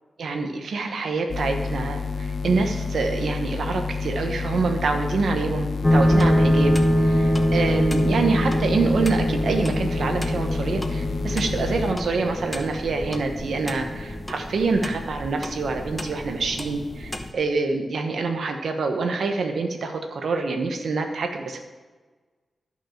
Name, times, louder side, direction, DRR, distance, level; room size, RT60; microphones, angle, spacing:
voice 1, 0.2-6.7 7.0-21.6, right 4 dB, 70° right, 4 dB, 1.1 m, -26 dB
sound 1, 1.3-11.9, left 4 dB, 50° left, 0.7 m, -29 dB
sound 2, 5.8-17.3, equal, 10° left, 0.9 m, -24 dB
11.5 x 6.2 x 5.8 m, 1.3 s
wide cardioid pair, 135°, 0 cm